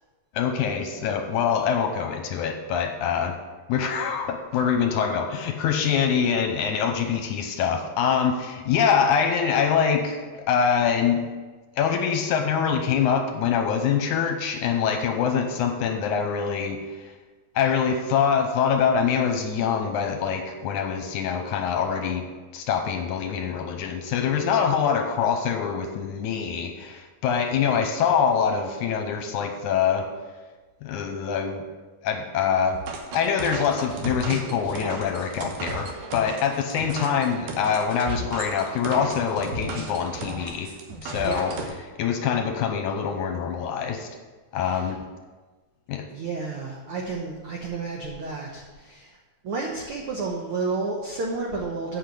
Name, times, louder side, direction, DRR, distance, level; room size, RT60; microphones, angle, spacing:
voice 1, 0.3-3.3 3.7-11.3 11.8-17.1 17.6-22.2 22.5-30.1 30.8-31.6 32.0-32.8 33.1-40.7 41.0-41.6 42.0-44.1 44.5-45.0 45.9-46.1, left 7 dB, 75° left, 5 dB, 1.9 m, -24 dB
sound 1, 32.7-41.7, right 3 dB, 70° right, 2.5 m, -35 dB
voice 2, 41.2-41.5 44.6-44.9 46.1-49.1 49.4-52.0, right 3 dB, 85° right, 0 dB, 1.2 m, -31 dB
8.6 x 5.7 x 7.7 m, 1.3 s
omnidirectional pair, 4.0 m